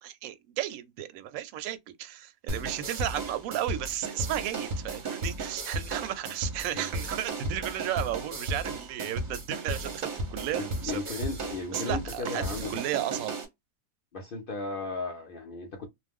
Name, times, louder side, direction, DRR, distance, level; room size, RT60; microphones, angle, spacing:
voice 1, 0.0-11.0 11.7-13.3, right 12 dB, 70° right, 0.9 m, -34 dB
sound 1, 2.5-13.5, right 2 dB, 45° right, 0.7 m, -35 dB
voice 2, 10.6-12.8 14.1-15.9, left 3 dB, 60° left, 0.5 m, -35 dB
2.5 x 2.1 x 3.5 m
omnidirectional pair, 1.6 m